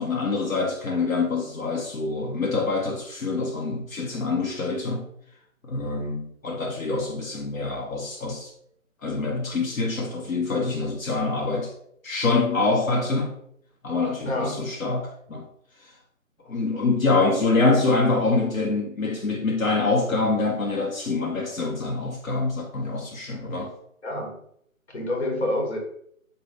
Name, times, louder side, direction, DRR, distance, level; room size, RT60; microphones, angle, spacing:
voice 1, 0.0-5.1 5.6-8.5 9.0-11.7 12.0-13.4 13.8-15.5 15.8-15.9 16.5-23.7, left 3 dB, 75° left, 0.8 m, -25 dB
voice 2, 14.2-14.6 24.0-24.4 24.9-25.8, left 1 dB, 50° left, 1.1 m, -27 dB
4.0 x 2.2 x 3.3 m
figure-of-eight pair, 170°, 42 cm